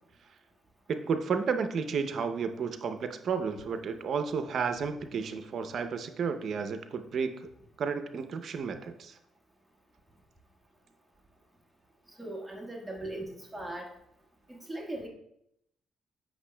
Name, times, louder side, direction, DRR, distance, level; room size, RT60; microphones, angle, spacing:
voice 1, 0.9-7.5 7.8-9.2, right 5 dB, 60° right, 8 dB, 0.6 m, -32 dB
voice 2, 12.2-13.9 14.5-15.1, right 1 dB, 10° right, -2 dB, 1.4 m, -39 dB
8.1 x 6.2 x 2.2 m, 0.75 s
cardioid pair, 90°, 0 cm